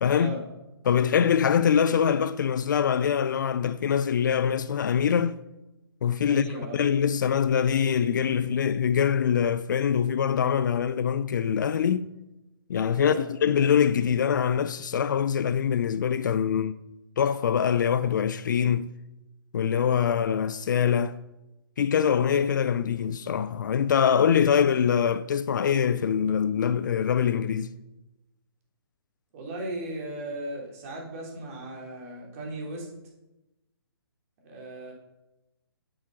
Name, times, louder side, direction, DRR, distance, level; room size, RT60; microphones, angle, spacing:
voice 1, 0.0-0.4 0.9-5.4 6.0-12.1 12.7-16.7 17.2-18.9 19.5-21.2 21.8-27.7, left 8 dB, 50° left, 0.5 m, -24 dB
voice 2, 6.3-6.8 12.9-13.2 29.3-32.9 34.4-34.9, right 1 dB, 35° right, 3.5 m, -36 dB
8.8 x 7.9 x 5.9 m
figure-of-eight pair, 135°, 13 cm